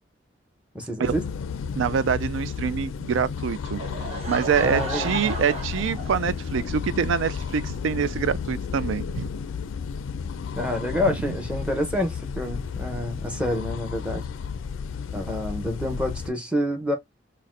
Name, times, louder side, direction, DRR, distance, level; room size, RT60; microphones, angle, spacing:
voice 1, 0.7-1.2 4.6-5.2 10.6-14.3 15.1-17.0, left 1 dB, 5° right, 0.7 m, -28 dB
sound 1, 1.0-16.3, left 6 dB, 90° left, 0.4 m, -33 dB
voice 2, 1.8-3.8 4.3-9.3 11.1-11.2, right 7 dB, 80° right, 0.3 m, -25 dB
Laughter / Crowd, 3.8-6.6, right 1 dB, 30° right, 1.0 m, -34 dB
4.0 x 2.1 x 2.5 m
head